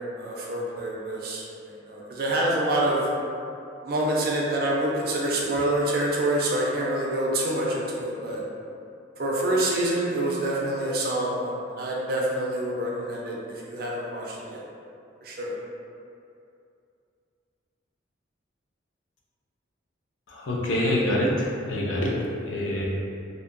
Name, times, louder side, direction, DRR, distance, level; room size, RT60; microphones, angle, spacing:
voice 1, 0.0-3.1 3.8-8.4 9.2-14.6 15.2-15.5, right 1 dB, 50° right, -3 dB, 0.4 m, -27 dB
voice 2, 20.3-22.1 22.4-22.9, left 1 dB, 80° left, -4 dB, 0.5 m, -25 dB
2.7 x 2.1 x 2.5 m, 2.5 s
head